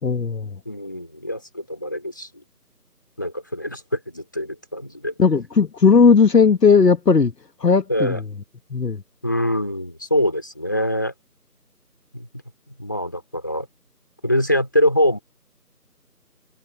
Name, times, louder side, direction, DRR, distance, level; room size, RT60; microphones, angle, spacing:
voice 1, 0.0-0.5 5.2-7.3 7.6-8.2 8.7-9.0, left 5 dB, 80° left, 1.1 m, -16 dB
voice 2, 0.6-2.3 3.2-5.1 7.9-8.2 9.2-11.1 12.1-12.3 12.7-13.7 14.2-15.2, left 1 dB, 10° left, 2.8 m, -24 dB
figure-of-eight pair, 175°, 48 cm